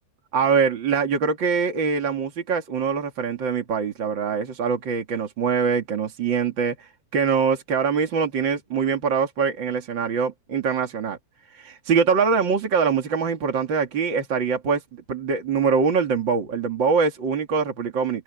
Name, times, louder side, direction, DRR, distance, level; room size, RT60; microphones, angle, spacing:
voice 1, 0.3-11.2 11.5-14.8 15.1-18.2, right 5 dB, 40° right, 1.6 m, -23 dB
open air
omnidirectional pair, 5.3 m